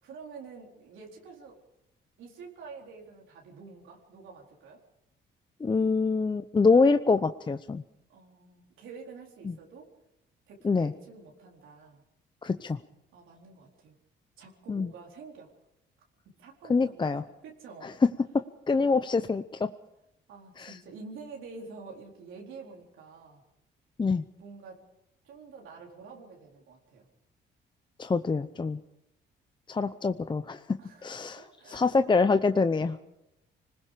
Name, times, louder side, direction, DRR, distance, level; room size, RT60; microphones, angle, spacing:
voice 1, 0.0-1.6 2.2-4.8 8.1-9.9 10.5-12.0 13.1-14.0 14.4-15.5 16.4-17.9 18.7-19.0 20.3-23.4 24.4-24.9 25.2-27.1 30.8-31.9, right 4 dB, 85° right, -1 dB, 4.3 m, -48 dB
voice 2, 5.6-7.8 9.4-9.5 10.6-10.9 12.4-12.8 14.7-14.9 16.7-17.2 17.8-17.9 18.7-19.7 20.6-20.7 24.0-24.2 28.0-28.8 29.7-30.6 31.0-33.0, left 4 dB, 25° left, 10 dB, 0.7 m, -25 dB
26.0 x 20.0 x 5.1 m, 0.85 s
cardioid pair, 90°, 20 cm